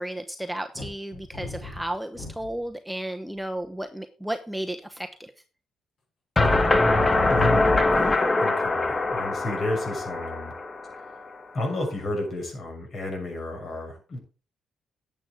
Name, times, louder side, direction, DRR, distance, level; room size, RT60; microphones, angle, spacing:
voice 1, 0.0-5.1, right 1 dB, 5° right, 6 dB, 0.9 m, -33 dB
sound 1, 0.7-2.7 3.4-3.8, left 2 dB, 60° left, 6.0 m, -39 dB
sound 2, 6.4-11.3, left 2 dB, 25° left, 1.4 m, -23 dB
voice 2, 7.3-10.5 11.5-14.2, left 1 dB, 45° left, 2 dB, 6.8 m, -32 dB
11.0 x 7.7 x 5.1 m, 0.36 s
cardioid pair, 90°, 0 cm